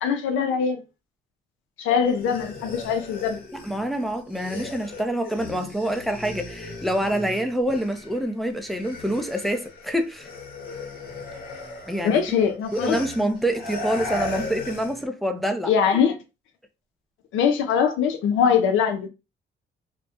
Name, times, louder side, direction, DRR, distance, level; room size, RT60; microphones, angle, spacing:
voice 1, 0.0-0.8 1.8-3.4 12.0-13.0 15.7-16.2 17.3-19.1, left 7 dB, 85° left, 0.4 m, -22 dB
sound 1, 2.0-8.2 8.5-15.0, left 2 dB, 50° left, 1.0 m, -37 dB
voice 2, 3.5-10.3 11.9-12.4 12.7-15.7, right 1 dB, ahead, 0.4 m, -26 dB
2.2 x 2.0 x 2.8 m
cardioid pair, 90°, 20 cm